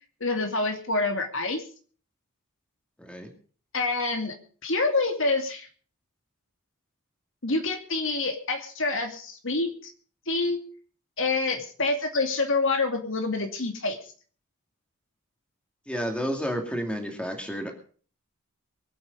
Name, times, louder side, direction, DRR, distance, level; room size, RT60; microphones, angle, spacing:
voice 1, 0.2-1.6 3.7-4.3 4.6-5.7 7.4-9.9 10.3-10.6 11.2-14.0, left 3 dB, 60° left, 5 dB, 2.5 m, -27 dB
voice 2, 3.0-3.3 15.9-17.7, equal, 5° left, 3 dB, 2.5 m, -31 dB
23.5 x 8.6 x 5.4 m, 0.43 s
head